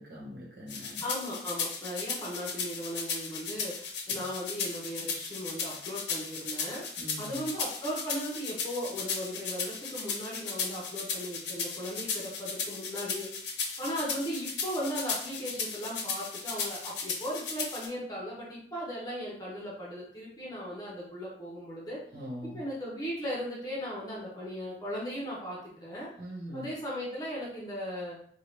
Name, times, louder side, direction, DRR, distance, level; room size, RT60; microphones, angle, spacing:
voice 1, 0.0-1.0 4.1-4.2 7.0-7.5 22.1-22.6 26.2-26.7, equal, 55° right, -5 dB, 1.3 m, -42 dB
sound 1, 0.7-17.9, left 5 dB, 85° left, 0.7 m, -35 dB
voice 2, 1.0-6.8 7.2-13.3 13.8-22.0 22.5-26.1 26.5-28.2, equal, 20° left, -6 dB, 0.9 m, -37 dB
3.6 x 2.4 x 3.2 m, 0.62 s
head